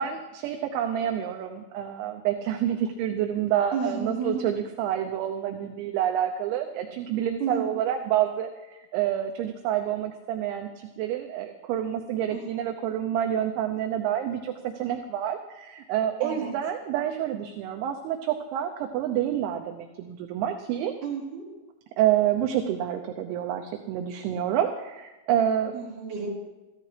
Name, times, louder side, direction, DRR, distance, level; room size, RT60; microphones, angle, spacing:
voice 1, 0.0-20.9 22.0-25.7, right 10 dB, 80° right, 4 dB, 2.9 m, -28 dB
voice 2, 3.7-4.5 7.4-7.7 12.3-12.4 16.2-16.5 21.0-21.5 25.7-26.3, right 5 dB, 40° right, -6 dB, 5.4 m, -31 dB
25.5 x 14.5 x 3.3 m, 1.1 s
omnidirectional pair, 5.7 m